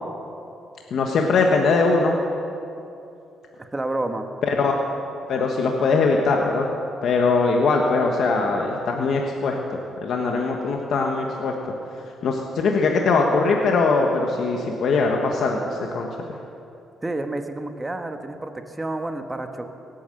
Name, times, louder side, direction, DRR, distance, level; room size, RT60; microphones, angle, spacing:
voice 1, 0.9-2.2 4.5-4.7 5.3-6.7 7.0-11.5 12.2-16.1, left 4 dB, 65° left, 1 dB, 1.3 m, -21 dB
voice 2, 3.6-4.3 17.0-19.7, right 2 dB, 15° right, 6 dB, 1.3 m, -29 dB
18.0 x 9.2 x 7.8 m, 2.7 s
cardioid pair, 90°, 0 cm